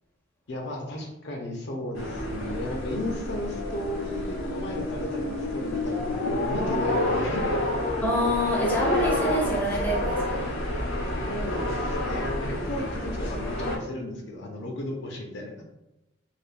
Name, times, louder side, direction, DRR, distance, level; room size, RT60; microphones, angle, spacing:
voice 1, 0.5-7.5 11.2-15.6, left 1 dB, 55° left, 1 dB, 0.5 m, -34 dB
sound 1, 1.9-13.8, left 1 dB, 90° left, 0.7 m, -29 dB
voice 2, 8.0-10.4, equal, 10° left, -3 dB, 0.5 m, -26 dB
3.4 x 2.1 x 2.5 m, 0.93 s
head